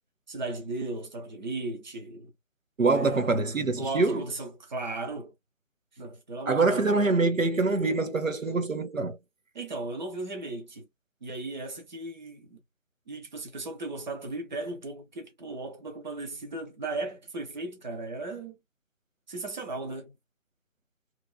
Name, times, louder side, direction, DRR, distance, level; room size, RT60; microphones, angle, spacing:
voice 1, 0.3-2.3 2.9-3.5 3.8-5.3 6.0-6.9 9.5-10.9 11.2-12.6 13.1-18.6 19.3-20.1, right 2 dB, 35° right, 0.9 m, -36 dB
voice 2, 2.8-4.2 6.5-9.2, right 3 dB, 90° right, 0.9 m, -25 dB
3.2 x 2.5 x 2.3 m
figure-of-eight pair, 150°, 38 cm